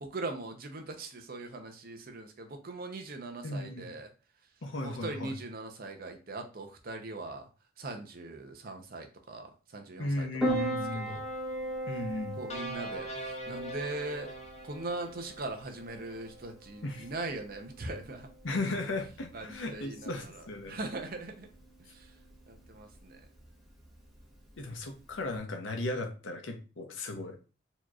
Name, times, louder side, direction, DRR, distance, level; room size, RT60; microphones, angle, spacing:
voice 1, 0.0-4.1 4.8-7.5 7.8-11.2 12.4-14.3 14.6-18.3 19.3-21.5 21.9-22.1 22.5-23.2, right 2 dB, 50° right, 5 dB, 0.7 m, -40 dB
voice 2, 3.4-4.0 4.6-5.4 10.0-11.2 11.9-12.4 16.8-17.1 18.4-20.8 24.6-27.4, left 2 dB, 90° left, 4 dB, 0.8 m, -36 dB
Piano, 10.4-25.4, right 1 dB, ahead, 1.1 m, -40 dB
sound 1, 12.5-15.8, right 1 dB, 35° left, 0.7 m, -43 dB
4.3 x 2.9 x 2.4 m, 0.35 s
head